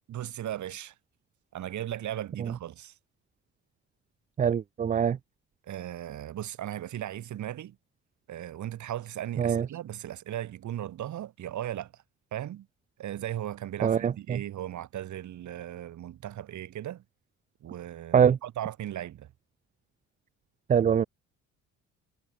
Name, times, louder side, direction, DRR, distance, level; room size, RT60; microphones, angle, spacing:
voice 1, 0.1-0.9 1.5-2.9 5.6-7.8 8.3-12.0 12.3-12.7 13.0-17.0 17.6-19.3, right 12 dB, 70° right, 2.9 m, -37 dB
voice 2, 4.4-5.2 9.4-9.7 13.8-14.4 18.1-18.4 20.7-21.1, right 8 dB, 25° right, 0.4 m, -23 dB
cardioid pair, 90°, 30 cm